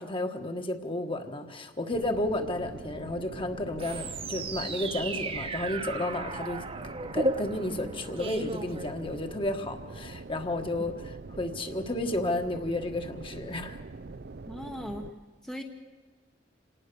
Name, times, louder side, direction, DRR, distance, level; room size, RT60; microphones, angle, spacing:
voice 1, 0.0-6.6 7.1-10.9 11.3-13.8, left 1 dB, 30° left, 6 dB, 1.5 m, -32 dB
sound 1, 1.9-15.1, right 3 dB, 60° right, 0.6 m, -44 dB
sound 2, 3.8-9.5, right 2 dB, 30° right, 1.2 m, -35 dB
voice 2, 14.5-15.1 15.4-15.6, equal, 5° left, 3 dB, 1.0 m, -38 dB
27.0 x 18.0 x 6.9 m, 1.4 s
head